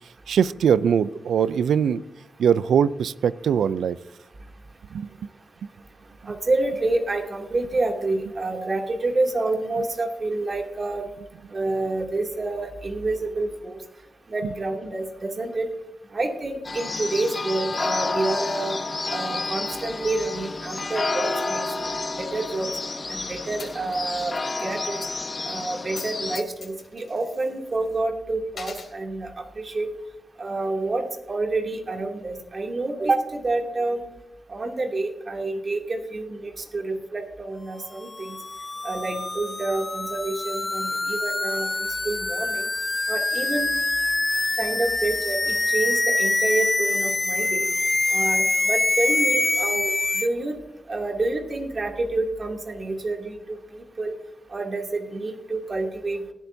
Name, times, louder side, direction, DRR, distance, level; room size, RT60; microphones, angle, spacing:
voice 1, 0.3-2.0 2.4-4.0 4.9-5.1, right 8 dB, 90° right, 18 dB, 0.4 m, -21 dB
voice 2, 6.3-11.0 11.5-13.8 14.3-15.7 16.1-18.8 19.1-21.6 22.2-22.7 23.1-24.3 24.6-25.0 25.5-29.9 30.4-34.0 34.5-38.3 38.8-42.7 43.1-43.7 44.6-47.7 48.1-50.6 50.9-54.1 54.5-56.2, right 2 dB, 55° right, 1 dB, 2.6 m, -28 dB
sound 1, 16.6-26.4, left 3 dB, 45° left, 1.1 m, -30 dB
Coin (dropping), 23.6-24.5 24.7-24.8 25.8-26.1 26.3-28.0 28.5-28.9, left 5 dB, 75° left, 2.9 m, -41 dB
sound 2, 38.0-50.3, left 2 dB, 30° left, 0.4 m, -25 dB
18.5 x 12.0 x 2.7 m, 0.93 s
cardioid pair, 45°, 0 cm